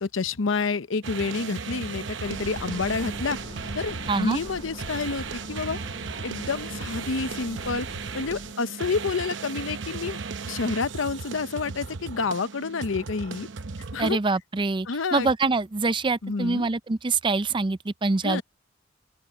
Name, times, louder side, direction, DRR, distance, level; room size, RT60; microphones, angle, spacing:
voice 1, 0.0-3.4 3.7-5.8 6.2-7.9 8.1-10.2 10.5-13.5 13.9-14.2 14.9-15.3 16.2-16.7 18.2-18.4, left 4 dB, 85° left, 0.8 m, -29 dB
sound 1, 1.0-14.1, right 5 dB, 70° right, 0.8 m, -36 dB
Car, 2.2-8.5, left 2 dB, 25° left, 0.5 m, -43 dB
voice 2, 4.1-4.4 14.0-18.4, right 3 dB, 25° right, 0.5 m, -25 dB
open air
head